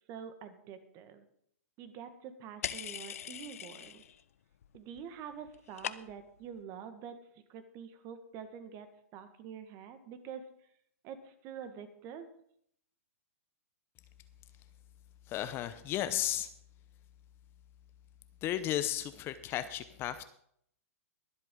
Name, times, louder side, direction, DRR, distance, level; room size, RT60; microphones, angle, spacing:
voice 1, 0.1-1.3 1.8-4.0 4.7-7.2 7.5-8.9 9.1-10.4 11.0-12.3, right 7 dB, 35° right, 10 dB, 1.6 m, -46 dB
sound 1, 2.6-4.2 4.5-5.1 5.3-6.4, left 10 dB, 70° left, 0.7 m, -41 dB
voice 2, 15.3-16.5 18.4-20.2, left 12 dB, 30° left, 11 dB, 0.7 m, -34 dB
22.5 x 8.0 x 3.8 m, 0.69 s
hypercardioid pair, 125°, 8 cm